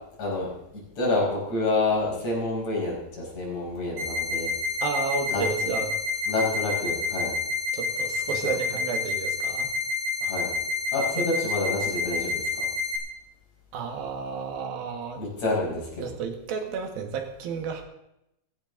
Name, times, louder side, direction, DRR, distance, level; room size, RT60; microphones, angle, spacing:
voice 1, 0.2-0.5 1.0-4.5 5.3-5.7 6.3-7.3 8.4-8.5 10.2-10.5 10.9-12.7 15.2-16.1, left 2 dB, 50° left, -3 dB, 6.5 m, -28 dB
sound 1, 4.0-13.0, left 3 dB, 60° right, 6.0 m, -29 dB
voice 2, 4.8-6.0 7.7-9.7 11.2-11.3 13.7-15.2 16.0-17.8, right 6 dB, 85° right, 5 dB, 3.4 m, -32 dB
17.5 x 15.5 x 3.9 m, 0.84 s
omnidirectional pair, 4.1 m